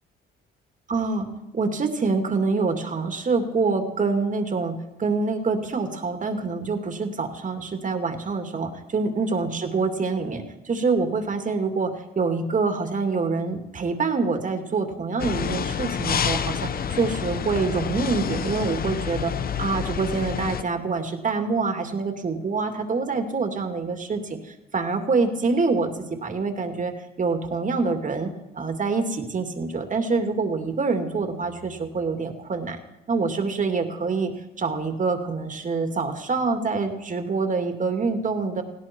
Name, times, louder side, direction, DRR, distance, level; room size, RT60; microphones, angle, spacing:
voice 1, 0.9-1.3 1.5-19.3 19.6-25.9 26.2-32.8 33.1-34.3 34.6-38.6, right 4 dB, 40° right, 5 dB, 2.5 m, -26 dB
sound 1, 15.2-20.6, left 8 dB, 50° left, 0.8 m, -28 dB
19.0 x 16.5 x 4.6 m, 0.99 s
cardioid pair, 90°, 20 cm